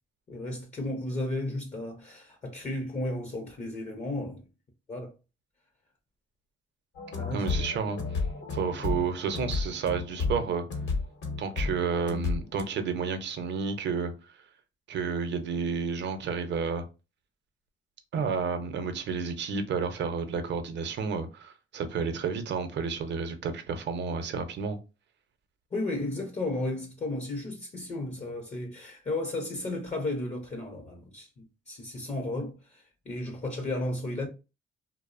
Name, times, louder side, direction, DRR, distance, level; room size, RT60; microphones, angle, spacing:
voice 1, 0.3-4.4 4.9-5.1 7.2-7.5 25.7-34.3, left 2 dB, 35° left, 0.6 m, -34 dB
sound 1, 7.0-12.6, left 4 dB, 65° left, 0.8 m, -32 dB
voice 2, 7.3-8.0 8.5-10.6 11.4-14.1 14.9-16.8 18.1-24.8, right 5 dB, 60° right, 0.6 m, -31 dB
2.5 x 2.0 x 2.4 m
cardioid pair, 90°, 20 cm